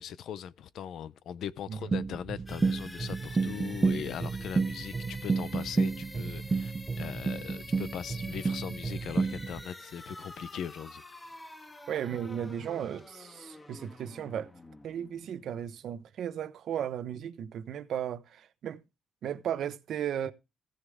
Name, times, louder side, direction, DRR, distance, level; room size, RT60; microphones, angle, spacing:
voice 1, 0.0-11.0, left 9 dB, 75° left, 0.6 m, -40 dB
sound 1, 1.9-9.6, right 4 dB, 30° right, 0.4 m, -31 dB
sound 2, 2.5-16.2, left 1 dB, 20° left, 1.5 m, -48 dB
voice 2, 11.9-14.5 14.8-18.8 19.2-20.3, right 9 dB, 70° right, 1.0 m, -35 dB
15.5 x 6.5 x 3.6 m
cardioid pair, 90°, 0 cm